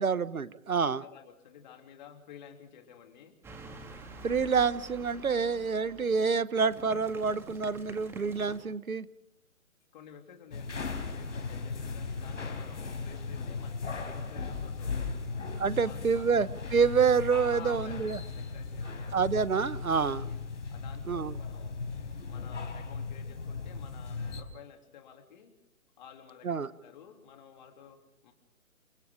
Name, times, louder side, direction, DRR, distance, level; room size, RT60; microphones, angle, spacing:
voice 1, 0.0-1.0 4.2-9.1 15.6-18.2 19.1-20.2 21.1-21.3 26.4-26.7, right 5 dB, 85° right, 16 dB, 1.3 m, -27 dB
voice 2, 0.7-3.3 9.9-15.4 15.8-16.4 17.5-19.3 20.0-20.4 20.7-21.8 22.3-25.5 26.0-28.3, left 8 dB, 35° left, 4 dB, 3.3 m, -52 dB
sound 1, 3.4-8.6, right 2 dB, 5° right, 1.8 m, -48 dB
sound 2, 10.5-24.4, left 4 dB, 65° left, 5.0 m, -37 dB
29.0 x 24.5 x 3.8 m, 0.80 s
figure-of-eight pair, 150°, 41 cm